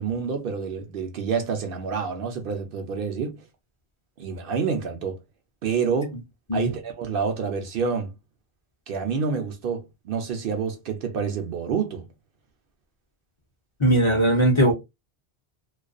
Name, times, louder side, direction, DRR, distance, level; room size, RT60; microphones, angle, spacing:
voice 1, 0.0-3.4 4.2-5.2 5.6-6.2 6.5-8.1 8.9-12.0, right 6 dB, 65° right, 0.7 m, -28 dB
voice 2, 13.8-14.7, right 1 dB, 35° left, 0.5 m, -19 dB
2.3 x 2.2 x 2.4 m
omnidirectional pair, 1.1 m